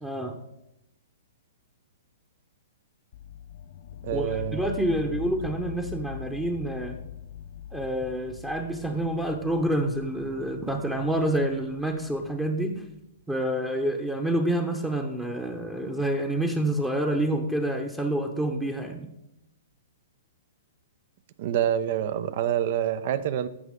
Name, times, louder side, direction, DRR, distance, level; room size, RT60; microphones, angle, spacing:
voice 1, 0.0-0.4 4.1-7.0 7.7-12.8 13.3-19.1, right 1 dB, 10° right, 4 dB, 0.9 m, -28 dB
sound 1, 3.1-12.9, left 9 dB, 55° left, 0.6 m, -42 dB
voice 2, 4.0-4.6 21.4-23.5, right 10 dB, 55° right, 15 dB, 0.6 m, -26 dB
14.5 x 5.6 x 3.7 m, 0.85 s
hypercardioid pair, 125°, 0 cm